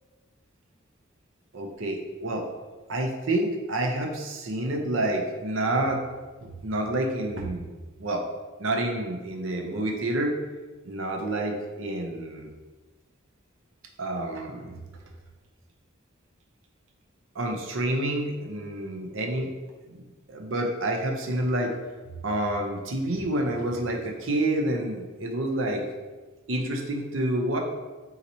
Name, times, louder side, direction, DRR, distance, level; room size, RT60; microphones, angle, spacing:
voice 1, 1.5-2.5 2.9-6.0 6.4-7.7 8.0-8.3 8.6-10.4 10.8-12.5 14.0-14.8 17.3-19.5 19.9-21.7 22.2-25.8 26.5-27.6, right 1 dB, 85° right, 2 dB, 0.7 m, -28 dB
4.0 x 2.9 x 4.1 m, 1.3 s
head